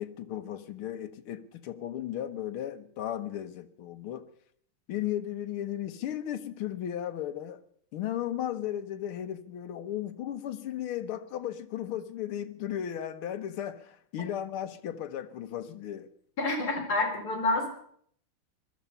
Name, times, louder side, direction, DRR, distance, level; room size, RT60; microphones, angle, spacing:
voice 1, 0.0-4.3 4.9-7.6 7.9-16.1, left 11 dB, 75° left, 1.9 m, -35 dB
voice 2, 16.4-17.7, left 2 dB, 45° left, 4.7 m, -28 dB
20.5 x 12.5 x 5.6 m
omnidirectional pair, 2.4 m